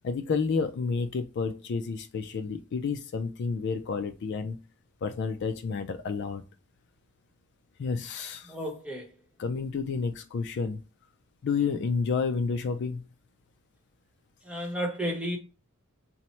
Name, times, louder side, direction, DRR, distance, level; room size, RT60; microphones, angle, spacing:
voice 1, 0.0-4.6 5.0-6.4 7.8-8.5 9.4-10.8 11.4-13.0, left 5 dB, 50° left, 0.3 m, -30 dB
voice 2, 8.5-9.1 14.5-15.4, equal, 5° right, 0.8 m, -32 dB
4.2 x 2.0 x 4.2 m
head